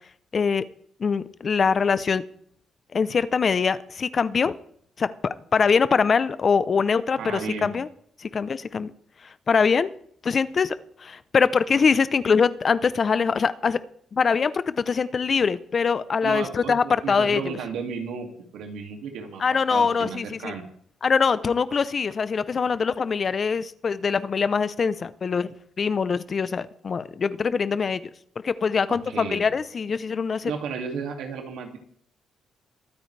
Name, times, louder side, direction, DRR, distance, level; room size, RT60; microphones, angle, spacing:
voice 1, 0.3-0.6 1.0-2.2 2.9-4.5 5.0-7.9 8.2-8.9 9.5-9.9 10.2-13.8 14.1-17.4 19.4-20.5 21.0-28.0 28.4-30.5, left 5 dB, 40° left, 15 dB, 0.7 m, -23 dB
voice 2, 7.2-7.7 16.2-18.3 18.5-19.4 19.7-20.6 28.9-29.5 30.4-31.8, right 6 dB, 85° right, 4 dB, 2.5 m, -33 dB
22.0 x 9.1 x 3.4 m, 0.64 s
cardioid pair, 90°, 0 cm